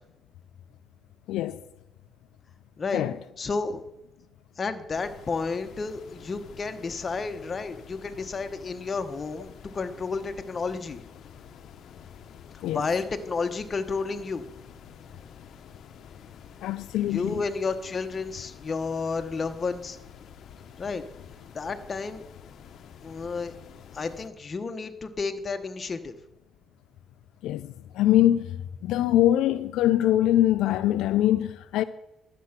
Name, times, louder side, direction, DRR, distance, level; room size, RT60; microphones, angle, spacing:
voice 1, 1.3-1.6 2.9-3.2 12.6-12.9 16.6-17.4 27.4-31.8, left 13 dB, 90° left, 0.4 m, -23 dB
voice 2, 3.4-3.8 4.6-9.5 9.7-11.0 12.7-14.4 17.0-20.0 20.8-21.0 21.5-22.2 23.0-23.5 23.9-26.2, left 4 dB, 35° left, 1.0 m, -31 dB
sound 1, 4.9-24.3, left 8 dB, 70° left, 0.8 m, -49 dB
12.0 x 7.6 x 5.9 m
cardioid pair, 90°, 0 cm